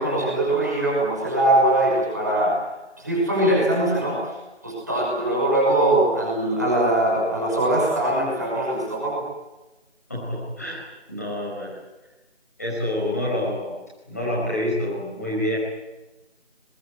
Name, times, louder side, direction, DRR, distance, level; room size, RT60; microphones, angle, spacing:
voice 1, 0.0-2.6 3.0-4.3 4.6-9.2, right 1 dB, 15° right, -4 dB, 5.7 m, -21 dB
voice 2, 10.1-10.8 11.1-11.8 12.6-13.8 14.1-15.6, left 1 dB, 15° left, -6 dB, 5.1 m, -27 dB
28.0 x 22.0 x 9.6 m, 1.1 s
figure-of-eight pair, 180°, 34 cm